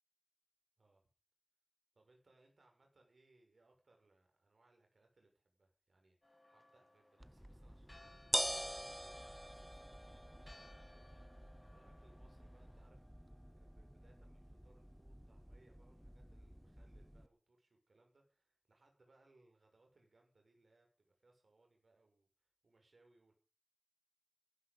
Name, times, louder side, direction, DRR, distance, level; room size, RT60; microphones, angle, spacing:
voice 1, 1.9-23.3, right 2 dB, 80° right, 3 dB, 6.4 m, -72 dB
Church bell, 6.2-12.9, left 1 dB, 35° left, 5.2 m, -65 dB
sound 1, 7.2-17.3, equal, 5° right, 0.6 m, -46 dB
16.0 x 12.5 x 5.4 m, 0.35 s
wide cardioid pair, 60°, 0 cm